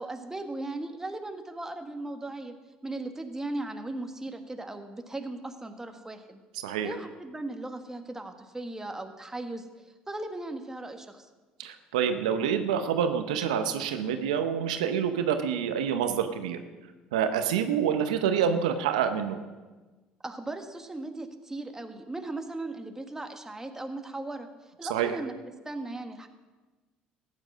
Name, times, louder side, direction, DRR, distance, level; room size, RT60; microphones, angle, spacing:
voice 1, 0.0-2.5 2.8-9.7 10.1-11.3 20.2-25.3 25.6-26.3, right 2 dB, 15° right, 6 dB, 1.6 m, -37 dB
voice 2, 11.6-16.6 17.1-19.4 24.9-25.2, right 8 dB, 85° right, 8 dB, 0.8 m, -27 dB
14.0 x 9.7 x 6.3 m, 1.3 s
hypercardioid pair, 65°, 4 cm